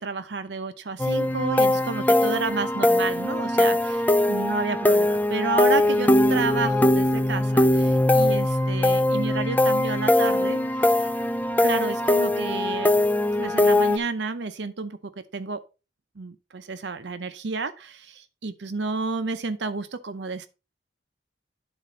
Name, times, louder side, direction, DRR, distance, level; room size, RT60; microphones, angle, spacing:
voice 1, 0.0-10.6 11.6-12.9 13.3-15.0 15.3-15.6 16.2-20.5, right 4 dB, 70° right, 0.7 m, -31 dB
sound 1, 1.0-14.0, left 1 dB, 10° left, 0.3 m, -21 dB
11.0 x 4.2 x 3.7 m
head